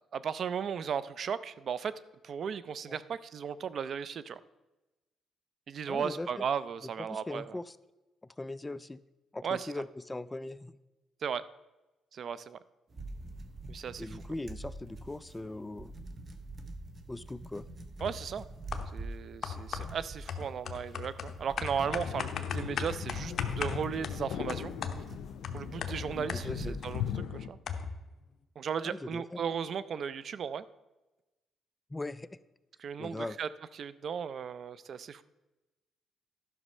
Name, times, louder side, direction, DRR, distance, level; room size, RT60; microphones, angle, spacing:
voice 1, 0.1-1.9 2.2-4.4 5.7-7.6 9.4-9.7 11.2-11.4 12.1-12.6 13.7-14.1 18.0-18.5 18.9-24.7 25.5-27.6 28.6-30.6 32.8-33.5 33.7-35.2, right 7 dB, 55° right, 16 dB, 0.5 m, -36 dB
voice 2, 5.9-6.4 7.1-7.8 8.4-9.0 9.3-10.7 14.0-15.9 17.1-17.7 26.4-26.8 28.8-29.4 31.9-32.3 33.0-33.4, left 2 dB, 15° left, 16 dB, 0.4 m, -39 dB
sound 1, 12.9-27.2, right 2 dB, 40° right, 1.1 m, -46 dB
sound 2, 18.0-18.3 18.7-19.1 19.4-27.0 27.3-27.4 27.7-28.1, left 6 dB, 55° left, 0.9 m, -38 dB
sound 3, 21.8-27.5, left 9 dB, 85° left, 0.5 m, -39 dB
11.0 x 6.1 x 5.4 m, 1.1 s
cardioid pair, 90°, 0 cm